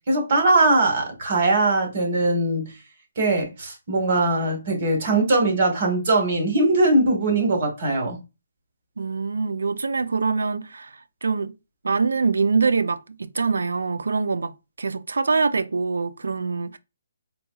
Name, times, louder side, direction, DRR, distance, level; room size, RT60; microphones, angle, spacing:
voice 1, 0.1-2.7 3.2-8.2, right 2 dB, 45° right, 1.5 m, -21 dB
voice 2, 9.0-10.9 11.2-11.5 11.8-14.5 14.8-16.8, right 4 dB, 85° right, 0.3 m, -24 dB
4.0 x 2.7 x 2.3 m
hypercardioid pair, 160°, 0 cm